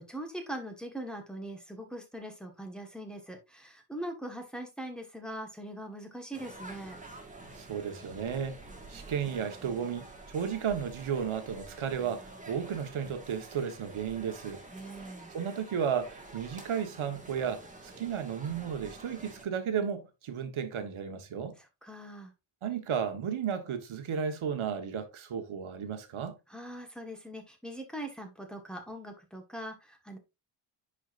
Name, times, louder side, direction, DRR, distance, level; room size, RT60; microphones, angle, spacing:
voice 1, 0.0-7.0 14.7-15.3 21.8-22.3 26.5-30.2, right 1 dB, ahead, 1.5 m, -41 dB
sound 1, 6.3-19.4, right 2 dB, 15° right, 1.7 m, -48 dB
voice 2, 7.5-8.6 8.9-14.6 15.3-21.6 22.6-26.4, right 7 dB, 75° right, 1.4 m, -34 dB
10.0 x 5.0 x 2.5 m
wide cardioid pair, 160°, 49 cm